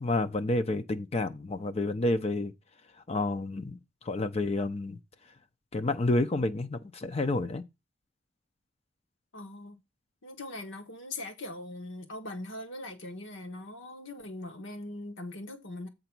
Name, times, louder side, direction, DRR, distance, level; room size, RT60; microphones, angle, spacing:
voice 1, 0.0-2.5 3.1-3.8 4.0-5.0 5.7-7.6, left 2 dB, 35° left, 0.5 m, -29 dB
voice 2, 9.3-9.8 10.2-15.9, left 2 dB, 75° left, 1.4 m, -41 dB
7.9 x 3.9 x 5.9 m
head